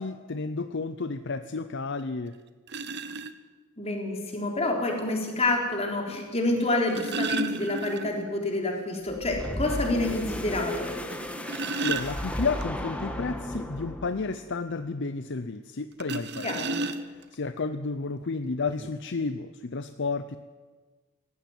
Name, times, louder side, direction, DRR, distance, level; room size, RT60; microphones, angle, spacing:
voice 1, 0.0-2.3 11.8-16.6 17.0-20.4, left 4 dB, 55° left, 11 dB, 0.7 m, -32 dB
sound 1, 2.0-2.1 2.7-3.3 4.7-4.8 6.6-8.3 8.7-8.8 9.2-9.3 9.8-9.9 11.1-12.6 16.0-17.3 18.2-18.3 18.7-18.9, right 3 dB, 50° right, 1.1 m, -32 dB
voice 2, 3.8-10.9 16.4-16.8, left 2 dB, 30° left, 1 dB, 4.0 m, -28 dB
sound 2, 9.1-14.3, equal, 5° left, 1.7 m, -34 dB
19.0 x 15.5 x 9.4 m, 1.4 s
head